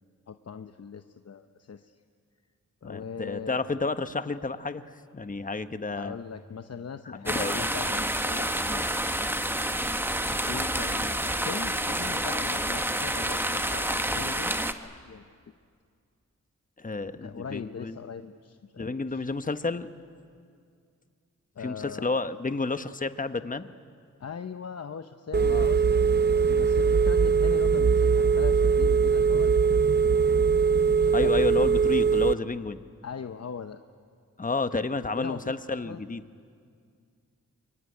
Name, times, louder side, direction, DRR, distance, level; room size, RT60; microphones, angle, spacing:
voice 1, 0.3-1.9 2.8-3.6 5.9-9.3 10.4-15.4 17.0-19.2 21.6-22.2 24.2-26.0 26.4-29.6 30.7-31.5 33.0-33.8 35.2-36.0, left 6 dB, 55° left, 8 dB, 0.8 m, -40 dB
voice 2, 2.8-6.2 7.1-7.6 8.6-8.8 16.8-18.0 18.8-19.9 21.6-23.7 25.4-25.7 31.1-32.8 34.4-36.2, left 3 dB, 25° left, 11 dB, 1.1 m, -31 dB
sound 1, 7.3-14.7, right 1 dB, 5° right, 1.2 m, -28 dB
Telephone, 25.3-32.3, right 6 dB, 35° right, 0.6 m, -21 dB
23.5 x 23.5 x 9.8 m, 2.2 s
cardioid pair, 70°, 31 cm